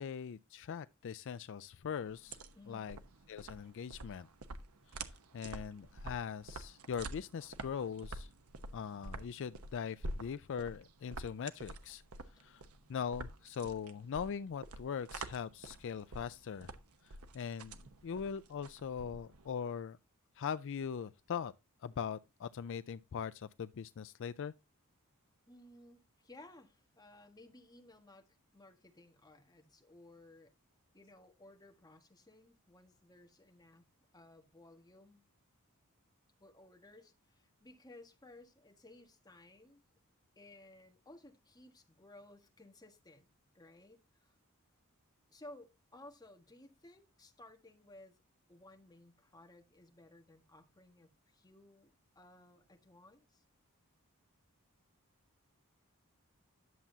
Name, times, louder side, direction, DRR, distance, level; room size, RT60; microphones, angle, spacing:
voice 1, 0.0-2.4 2.7-3.0 3.3-4.3 5.0-8.3 8.7-12.0 12.4-12.6 12.9-16.7 17.0-17.8 18.0-20.0 20.4-21.5 21.8-24.5, left 7 dB, 60° left, 0.4 m, -41 dB
sound 1, 2.0-19.5, right 2 dB, 80° right, 1.0 m, -48 dB
voice 2, 2.5-2.9 25.5-30.5 30.9-33.8 34.1-35.3 36.4-39.8 40.3-43.3 43.5-44.3 45.3-48.2 48.5-53.4, left 2 dB, 20° left, 1.5 m, -58 dB
11.0 x 7.3 x 2.7 m
head